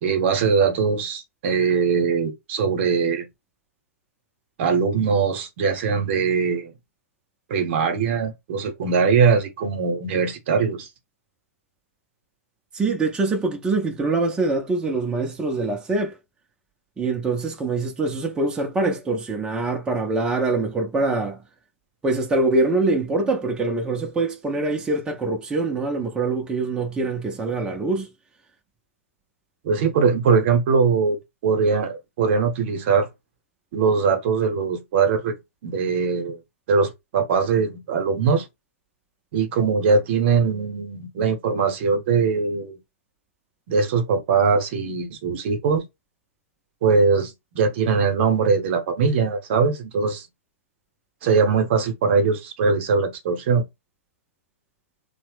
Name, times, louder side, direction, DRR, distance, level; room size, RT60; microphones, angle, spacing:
voice 1, 0.0-3.3 4.6-6.7 7.5-10.9 29.6-31.2 31.4-33.1 33.7-35.4 35.6-36.4 36.7-38.5 39.3-42.8 43.7-45.8 46.8-50.3 51.2-53.6, right 5 dB, 50° right, 0.8 m, -21 dB
voice 2, 12.7-16.1 17.0-21.4 22.0-28.1, right 3 dB, 10° right, 0.5 m, -24 dB
2.8 x 2.1 x 3.2 m
hypercardioid pair, 125°, 8 cm